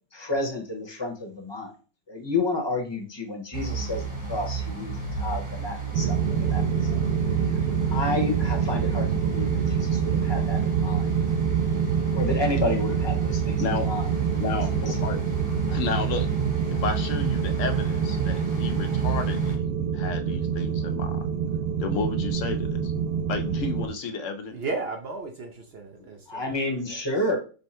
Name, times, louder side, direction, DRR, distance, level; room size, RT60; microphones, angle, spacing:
voice 1, 0.1-1.7 2.1-6.6 7.9-11.1 12.1-14.1 14.8-14.9 26.3-27.4, left 2 dB, 20° left, 0.9 m, -30 dB
sound 1, 3.5-19.6, right 6 dB, 15° right, 0.9 m, -31 dB
sound 2, 5.9-23.9, right 7 dB, 75° right, 1.1 m, -26 dB
voice 2, 14.4-15.2 15.7-16.3 16.8-19.7 19.9-21.3 21.8-22.9 23.3-24.6, left 5 dB, 65° left, 0.8 m, -32 dB
voice 3, 24.5-27.0, right 3 dB, 60° right, 0.6 m, -35 dB
5.4 x 2.2 x 4.3 m
omnidirectional pair, 1.7 m